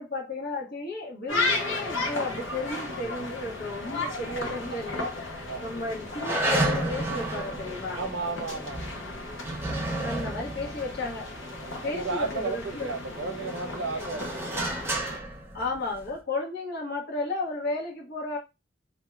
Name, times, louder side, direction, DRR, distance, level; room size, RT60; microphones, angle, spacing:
voice 1, 0.0-8.0 10.0-11.3 11.8-12.9 15.5-18.4, left 2 dB, 55° left, 1.0 m, -33 dB
sound 1, 1.3-15.2, left 2 dB, 85° left, 0.9 m, -35 dB
sound 2, 4.2-5.0 5.4-5.5 6.1-12.3 12.8-16.2, right 2 dB, 15° right, 0.5 m, -32 dB
voice 2, 7.9-8.8 11.5-14.7, right 3 dB, 70° right, 0.6 m, -33 dB
2.6 x 2.1 x 3.3 m
head